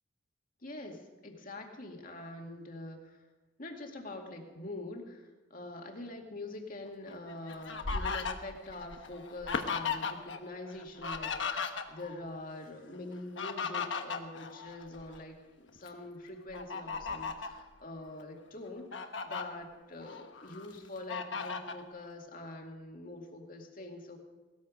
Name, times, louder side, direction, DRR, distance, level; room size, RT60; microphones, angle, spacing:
voice 1, 0.6-3.2 3.6-24.2, left 2 dB, 45° left, 2 dB, 2.3 m, -45 dB
Fowl, 7.1-10.4 10.7-12.2 13.1-15.2 15.7-15.9 16.5-17.6 18.2-18.3 18.7-19.4 20.0-20.7 21.1-21.8, left 5 dB, 70° left, 1.2 m, -36 dB
19.0 x 13.5 x 5.2 m, 1.2 s
head